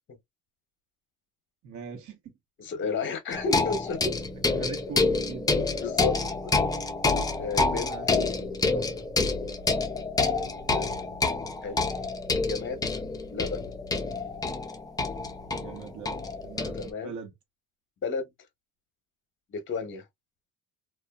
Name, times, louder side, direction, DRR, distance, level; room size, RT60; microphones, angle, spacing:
voice 1, 1.6-2.3 4.5-5.9 7.7-8.1 10.7-11.0 15.5-17.3, right 5 dB, 55° right, 1.0 m, -41 dB
voice 2, 2.6-4.1 5.8-6.2 6.4-6.6 7.4-7.9 8.7-9.0 11.6-11.8 12.5-12.8 13.3-13.8 16.7-17.1 18.0-18.2 19.5-20.0, left 4 dB, 35° left, 0.8 m, -32 dB
sound 1, 3.3-16.9, left 3 dB, 10° left, 0.3 m, -28 dB
2.6 x 2.3 x 2.2 m
cardioid pair, 130°, 35 cm